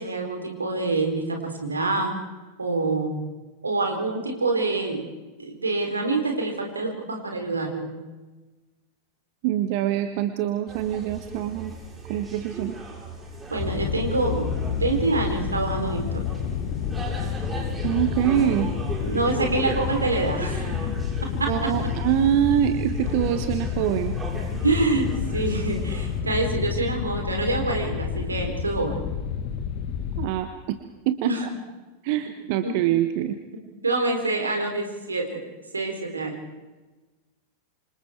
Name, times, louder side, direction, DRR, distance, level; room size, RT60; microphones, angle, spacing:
voice 1, 0.0-2.2 2.6-3.2 3.6-5.1 5.4-7.9 13.5-16.2 19.0-20.9 21.4-21.7 24.6-29.0 31.2-31.5 32.6-32.7 33.8-35.4 35.7-36.4, right 2 dB, 80° right, 3 dB, 4.3 m, -26 dB
voice 2, 9.4-11.7 12.1-12.8 17.8-18.7 21.5-24.2 30.2-30.8 31.0-31.3 32.0-33.4, right 11 dB, 45° right, 9 dB, 1.3 m, -24 dB
sound 1, 10.7-26.2, right 3 dB, 15° right, 7.5 m, -38 dB
sound 2, 13.6-30.3, left 7 dB, 45° left, 1.8 m, -29 dB
28.0 x 26.5 x 4.6 m, 1.2 s
figure-of-eight pair, 90°, 0 cm